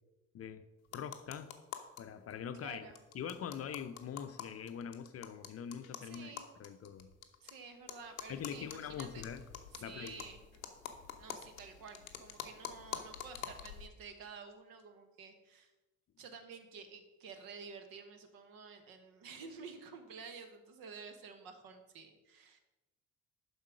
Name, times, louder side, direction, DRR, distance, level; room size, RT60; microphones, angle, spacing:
voice 1, 0.3-0.6 0.9-1.5 2.0-2.9 3.1-6.3 6.6-7.1 8.3-9.4 9.8-10.2, left 8 dB, 35° left, 0.6 m, -43 dB
sound 1, 0.9-2.0 2.3-2.4 2.6-2.7 3.0-7.5 7.9-13.9, left 9 dB, 90° left, 0.6 m, -47 dB
voice 2, 2.6-3.0 6.0-6.5 7.4-9.3 9.8-10.4 11.2-15.7 16.2-22.6, right 5 dB, 60° right, 1.2 m, -51 dB
7.3 x 5.5 x 4.9 m
figure-of-eight pair, 50°, 40 cm